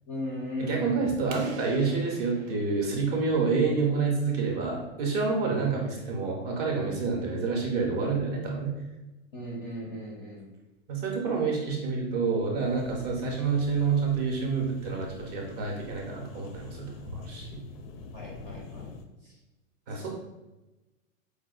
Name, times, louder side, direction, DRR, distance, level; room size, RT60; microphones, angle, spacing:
voice 1, 0.1-1.1 5.4-5.6 9.3-10.4 18.1-18.9 19.2-19.3 19.9-20.1, left 1 dB, 20° left, -3 dB, 0.4 m, -37 dB
voice 2, 0.6-8.7 10.9-17.6 19.9-20.1, right 4 dB, 30° right, -1 dB, 0.5 m, -28 dB
sound 1, 1.3-4.0, right 5 dB, 80° right, 0.6 m, -47 dB
sound 2, 12.7-19.0, left 3 dB, 70° left, 0.5 m, -45 dB
4.4 x 2.1 x 2.3 m, 1.0 s
hypercardioid pair, 140°, 40 cm